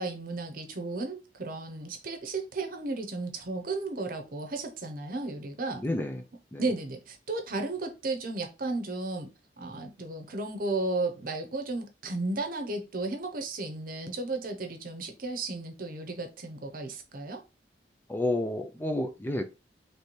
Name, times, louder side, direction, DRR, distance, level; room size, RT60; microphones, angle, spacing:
voice 1, 0.0-5.8 6.6-9.3 9.6-17.4, right 2 dB, 50° right, 0.8 m, -34 dB
voice 2, 5.7-6.2 6.5-6.7 18.1-19.4, left 1 dB, 10° left, 0.4 m, -30 dB
3.3 x 3.1 x 4.1 m
head